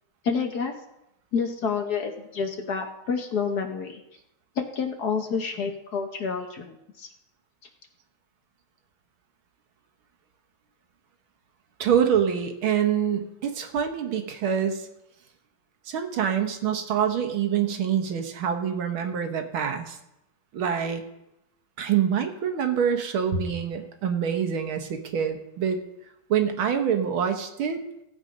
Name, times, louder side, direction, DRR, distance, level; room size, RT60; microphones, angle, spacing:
voice 1, 0.2-0.8 1.3-4.0 4.6-7.1, left 5 dB, 55° left, 4 dB, 1.5 m, -29 dB
voice 2, 11.8-14.9 15.9-20.0 20.5-21.0 21.8-25.8 26.3-27.8, right 8 dB, 80° right, 6 dB, 2.0 m, -25 dB
16.0 x 8.1 x 5.3 m, 0.86 s
omnidirectional pair, 2.3 m